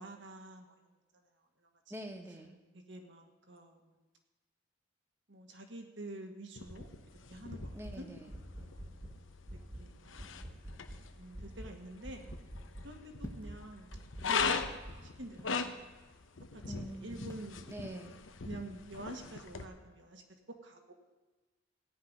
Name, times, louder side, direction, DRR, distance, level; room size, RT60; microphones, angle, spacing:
voice 1, 0.0-1.7 2.7-4.0 5.3-6.9 7.3-8.1 8.4-9.1 9.5-10.4 11.1-12.3 12.8-14.5 15.0-15.8 16.5-18.1 18.4-20.2 20.5-20.9, right 1 dB, 65° right, 4 dB, 1.9 m, -49 dB
voice 2, 1.9-2.6 7.7-8.3 16.7-17.4 17.7-18.2, right 1 dB, 15° right, 3 dB, 1.4 m, -45 dB
sound 1, 6.6-19.6, left 5 dB, 85° left, 1.0 m, -41 dB
sound 2, 7.6-8.0 8.3-9.2 9.5-9.9 10.2-11.0 11.3-11.7 12.0-12.9 13.2-13.6 13.9-15.0, equal, 35° right, 2.0 m, -46 dB
sound 3, 13.2-13.6 14.4-15.6 17.3-17.6, left 1 dB, 15° left, 1.2 m, -49 dB
16.5 x 5.9 x 9.7 m, 1.2 s
head